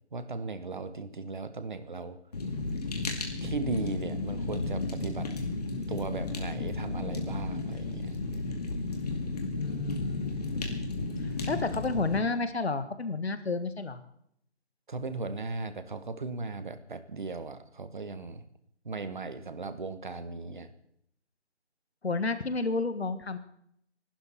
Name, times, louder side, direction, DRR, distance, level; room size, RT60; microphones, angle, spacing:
voice 1, 0.1-2.2 3.4-5.3 5.9-8.2 14.9-18.5 18.8-20.7, right 3 dB, 45° right, 11 dB, 1.3 m, -37 dB
Fire, 2.3-12.2, left 3 dB, 35° left, 2.3 m, -33 dB
voice 2, 9.6-10.8 11.2-14.0 22.0-23.4, left 3 dB, 70° left, 11 dB, 1.7 m, -31 dB
28.5 x 12.0 x 4.2 m, 0.71 s
figure-of-eight pair, 170°, 34 cm